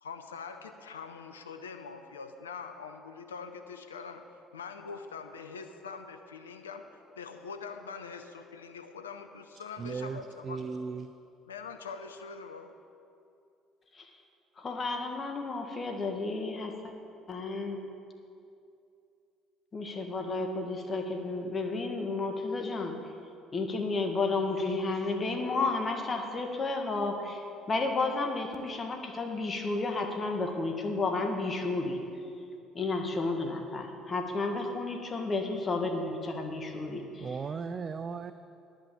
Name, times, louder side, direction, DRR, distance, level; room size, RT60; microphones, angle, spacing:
voice 1, 0.0-4.2 4.5-10.8 11.5-12.7, left 5 dB, 85° left, 7 dB, 0.5 m, -43 dB
voice 2, 9.8-11.1 37.2-38.3, right 5 dB, 35° right, 11 dB, 0.4 m, -36 dB
voice 3, 14.6-16.9 17.3-17.8 19.7-22.9 23.5-32.0 32.7-37.3, left 3 dB, 35° left, 4 dB, 1.6 m, -32 dB
10.5 x 6.2 x 8.5 m, 2.5 s
hypercardioid pair, 55°, 0 cm